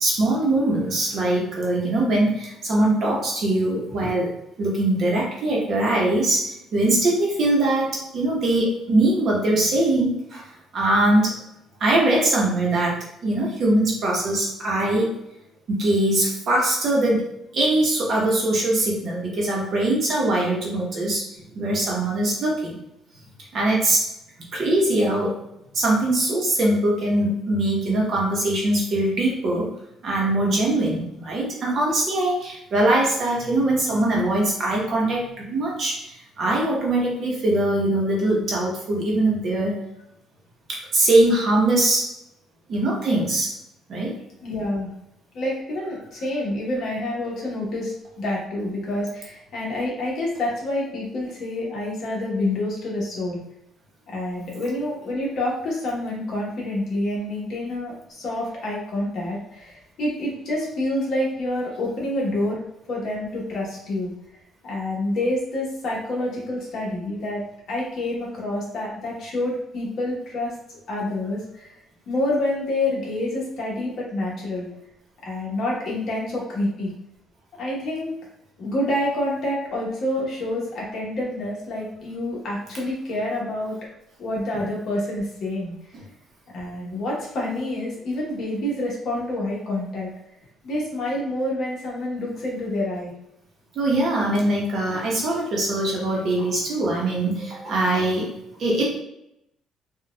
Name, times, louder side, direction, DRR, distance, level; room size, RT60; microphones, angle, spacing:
voice 1, 0.0-4.3 4.6-6.5 6.7-10.4 10.7-11.4 11.8-15.2 15.7-17.3 17.5-21.2 21.5-22.8 23.5-24.0 24.5-25.4 25.7-29.7 30.0-36.0 36.4-39.8 40.9-42.1 42.7-43.5 43.9-44.1 93.8-98.3 98.6-99.0, right 1 dB, 40° right, -3 dB, 0.8 m, -22 dB
voice 2, 44.4-44.9 45.3-53.4 54.1-62.6 62.9-64.1 64.6-67.4 67.7-70.5 70.9-71.7 72.1-74.7 75.2-76.9 77.6-78.1 78.6-83.8 84.2-85.7 86.5-90.1 90.6-93.1, left 1 dB, 50° left, -4 dB, 1.1 m, -27 dB
4.1 x 2.3 x 2.3 m, 0.81 s
cardioid pair, 170°, 0 cm